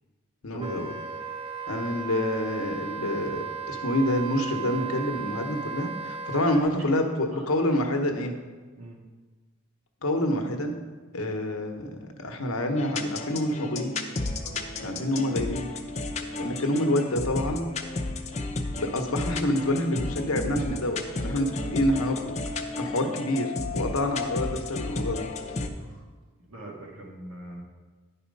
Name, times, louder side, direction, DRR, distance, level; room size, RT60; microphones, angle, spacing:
voice 1, 0.4-0.9 1.7-8.3 10.0-10.8 11.1-13.9 14.8-15.7 16.4-17.7 18.8-22.4 22.8-25.3, left 1 dB, 85° left, 4 dB, 1.0 m, -27 dB
Wind instrument woodwind instrument, 0.6-6.6, right 6 dB, 25° right, 0.4 m, -36 dB
sound 1, 12.8-25.7, left 2 dB, 30° left, 0.5 m, -33 dB
voice 2, 16.2-16.5 21.6-21.7 25.7-26.0 26.5-27.6, right 2 dB, 85° right, -1 dB, 1.7 m, -42 dB
10.5 x 4.3 x 5.3 m, 1.4 s
head